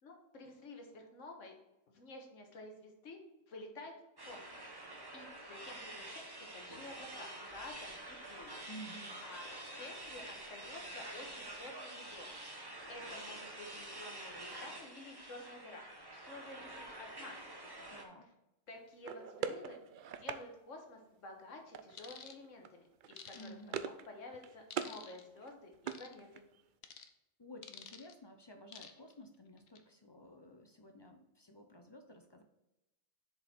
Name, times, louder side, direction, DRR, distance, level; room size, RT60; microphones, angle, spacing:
voice 1, 0.0-1.6 1.9-3.2 3.5-3.9 4.2-4.6 5.1-8.6 9.2-9.5 9.7-12.3 12.9-15.8 16.1-18.0 18.7-19.8 20.1-23.6 23.8-26.4, left 2 dB, 90° left, 3 dB, 1.6 m, -51 dB
sound 1, 4.2-18.0, right 1 dB, 20° right, 1.0 m, -48 dB
voice 2, 8.7-9.2 17.9-18.3 23.3-23.8 27.4-32.4, equal, 30° left, 5 dB, 0.5 m, -53 dB
sound 2, 19.0-20.4 21.7-22.2 22.4-22.7 23.0-24.1 24.3-25.0 25.4-26.6, right 7 dB, 60° right, 0.5 m, -42 dB
sound 3, 22.0-22.4 23.2-23.8 24.7-25.2 25.9-26.1 26.8-27.1 27.6-28.1 28.7-29.1 29.6-29.8, left 7 dB, 60° left, 0.9 m, -51 dB
7.0 x 5.2 x 4.3 m, 0.93 s
omnidirectional pair, 1.3 m